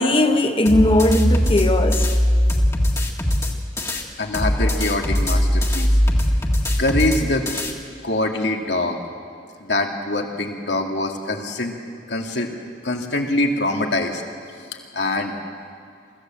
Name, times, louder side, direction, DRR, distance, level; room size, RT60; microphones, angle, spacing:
voice 1, 0.0-2.1, left 1 dB, 30° left, 5 dB, 1.2 m, -18 dB
sound 1, 0.7-4.0 4.3-7.7, equal, 15° left, 1.8 m, -20 dB
voice 2, 3.9-6.0 6.8-7.4 8.0-9.0 9.6-11.7 12.1-12.5 12.8-14.2 14.9-15.3, left 2 dB, 85° left, 2 dB, 2.2 m, -24 dB
24.0 x 14.5 x 7.6 m, 2.2 s
head